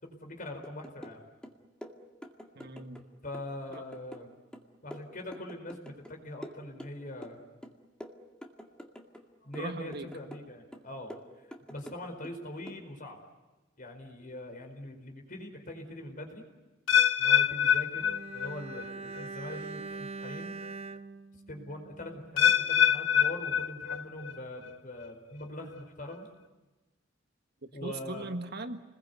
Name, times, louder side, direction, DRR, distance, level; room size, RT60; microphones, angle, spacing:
voice 1, 0.0-1.2 3.2-4.3 4.8-7.4 9.4-11.1 11.7-13.2 13.8-16.4 17.2-20.5 21.5-26.3 27.7-28.3, left 1 dB, 45° left, 3 dB, 4.7 m, -42 dB
sound 1, 0.6-1.2 1.4-3.1 3.3-6.1 6.4-7.4 7.6-9.2 9.5-10.5 10.7-12.3 12.7-12.8, equal, 5° left, 2.1 m, -47 dB
voice 2, 2.6-3.0 3.7-3.8 9.6-10.1 27.8-28.8, right 2 dB, 60° right, 7 dB, 1.6 m, -39 dB
sound 2, 16.9-18.9 19.2-19.6 20.2-20.3 22.4-24.3 24.6-25.1 25.7-25.8, left 8 dB, 70° left, 1.0 m, -26 dB
Bowed string instrument, 18.0-22.4 22.7-22.8, right 4 dB, 35° right, 0.9 m, -43 dB
29.5 x 21.5 x 8.3 m, 1.1 s
head